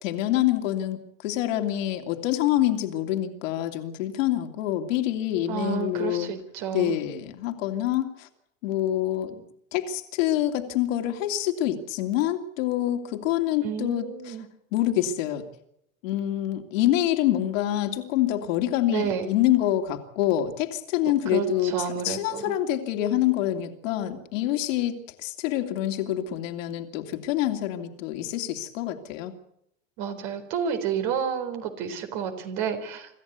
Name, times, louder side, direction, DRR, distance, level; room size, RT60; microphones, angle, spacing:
voice 1, 0.0-6.3 6.7-8.3 8.6-9.4 9.7-14.4 14.7-15.5 16.0-29.3, left 12 dB, 65° left, 6 dB, 2.9 m, -26 dB
voice 2, 5.5-6.9 13.6-14.5 18.9-19.3 21.3-22.5 30.0-33.1, right 7 dB, 55° right, 6 dB, 4.4 m, -30 dB
26.0 x 14.0 x 8.3 m, 0.76 s
hypercardioid pair, 85°, 41 cm